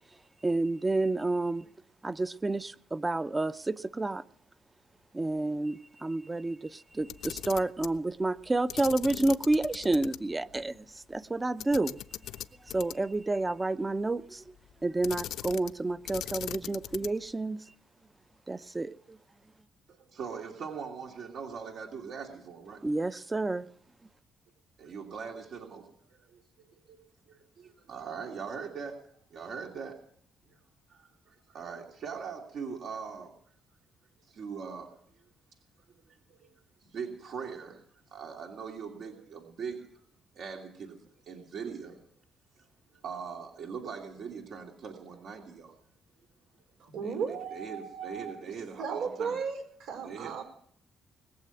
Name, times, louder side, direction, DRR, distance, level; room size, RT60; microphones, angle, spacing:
voice 1, 0.4-1.7 2.0-4.2 5.1-12.0 12.7-14.5 14.8-17.6 18.5-19.2 22.8-23.7, right 2 dB, 20° right, 0.7 m, -30 dB
Camera, 7.0-8.0 8.7-10.2 10.5-10.6 11.6-13.2 15.0-15.8 16.1-17.3, left 12 dB, 80° left, 0.6 m, -39 dB
voice 2, 19.9-22.8 24.8-27.0 27.3-29.0 29.3-30.0 30.9-33.3 34.2-35.0 36.3-36.5 36.8-37.8 38.1-39.9 40.3-42.0 42.6-42.7 43.0-45.7 47.0-49.4 50.0-50.4, right 6 dB, 65° right, 2.7 m, -41 dB
voice 3, 46.8-48.3 48.8-50.4, right 6 dB, 85° right, 4.8 m, -35 dB
21.0 x 7.6 x 8.9 m
cardioid pair, 90°, 0 cm